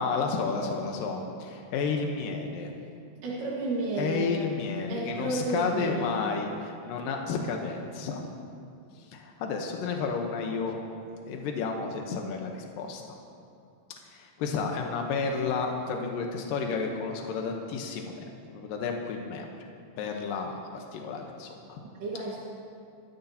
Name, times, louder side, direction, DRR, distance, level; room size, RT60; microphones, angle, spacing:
voice 1, 0.0-2.7 4.0-8.2 9.1-10.8 11.3-13.2 14.1-18.1 18.5-19.5 20.0-21.8, left 5 dB, 80° left, 2 dB, 2.7 m, -31 dB
voice 2, 3.2-4.3 4.9-6.1 21.9-22.4, right 2 dB, 75° right, -6 dB, 3.3 m, -31 dB
23.0 x 13.0 x 2.9 m, 2.5 s
omnidirectional pair, 3.9 m